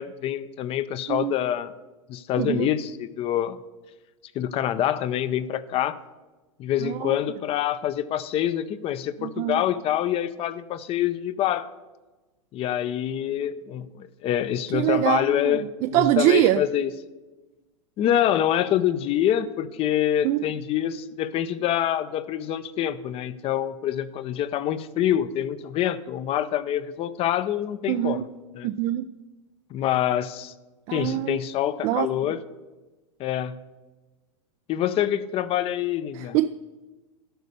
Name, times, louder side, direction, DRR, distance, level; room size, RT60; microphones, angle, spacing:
voice 1, 0.0-1.7 2.1-3.6 4.3-6.0 6.6-11.7 12.5-16.9 18.0-28.2 28.5-28.7 29.7-30.5 30.9-32.4 33.2-33.6 34.7-36.4, left 11 dB, 35° left, 0.6 m, -26 dB
voice 2, 2.4-2.7 6.8-7.1 9.2-9.6 14.7-16.6 20.2-20.4 27.9-28.2 28.6-29.1 30.9-31.4 31.8-32.1 36.2-36.5, right 14 dB, 40° right, 0.4 m, -24 dB
12.5 x 5.2 x 6.6 m
hypercardioid pair, 110°, 17 cm